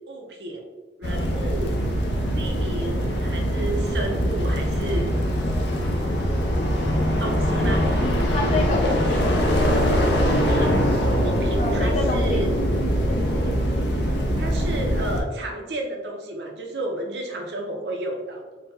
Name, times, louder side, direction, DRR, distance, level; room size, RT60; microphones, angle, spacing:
voice 1, 0.1-0.7 1.0-1.8 2.4-5.2 7.1-7.9 10.1-12.5 13.3-13.6 14.3-18.6, right 1 dB, 70° right, 2 dB, 0.7 m, -32 dB
sound 1, 1.0-15.2, equal, 75° left, 0.6 m, -22 dB
voice 2, 8.0-9.2 11.6-12.4 13.1-13.3, left 3 dB, 35° left, 1 dB, 0.3 m, -28 dB
4.0 x 2.2 x 4.0 m, 1.2 s
head